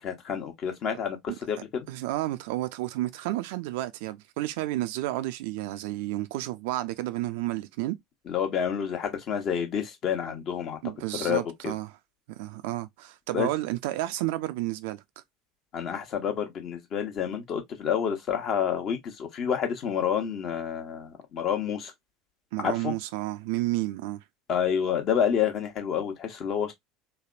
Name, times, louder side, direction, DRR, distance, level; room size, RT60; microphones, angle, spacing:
voice 1, 0.0-1.9 8.3-10.8 11.2-11.7 13.3-13.5 15.7-21.9 22.6-22.9 24.5-26.7, left 8 dB, 45° left, 1.0 m, -29 dB
voice 2, 1.9-8.0 10.8-11.9 12.3-15.0 22.5-24.2, right 17 dB, 65° right, 0.3 m, -31 dB
3.3 x 2.2 x 2.4 m
figure-of-eight pair, 70°, 0 cm